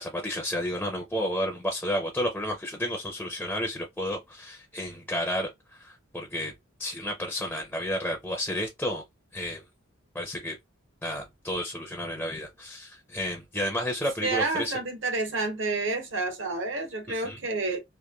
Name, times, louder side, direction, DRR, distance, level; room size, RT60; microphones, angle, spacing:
voice 1, 0.0-6.5 6.8-9.0 9.3-9.6 10.1-10.6 11.0-14.8 17.1-17.4, equal, 5° left, 0.4 m, -31 dB
voice 2, 14.2-17.8, right 3 dB, 60° right, 0.7 m, -29 dB
2.9 x 2.2 x 2.2 m
head